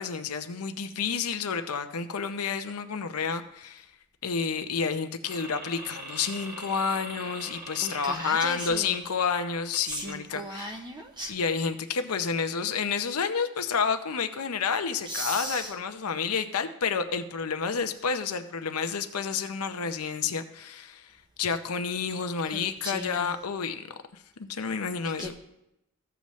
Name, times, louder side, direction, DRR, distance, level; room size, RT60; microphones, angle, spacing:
voice 1, 0.0-3.9 4.2-10.7 11.3-21.1 21.4-23.8 24.4-25.3, left 5 dB, 80° left, 8 dB, 0.7 m, -30 dB
sound 1, 5.2-9.4 9.7-10.1, right 1 dB, 40° right, 2.2 m, -42 dB
voice 2, 7.8-9.1 9.8-11.4 15.0-15.8 22.4-23.4 25.2-25.3, equal, 20° right, 2 dB, 0.7 m, -37 dB
15.0 x 6.9 x 3.1 m, 0.85 s
head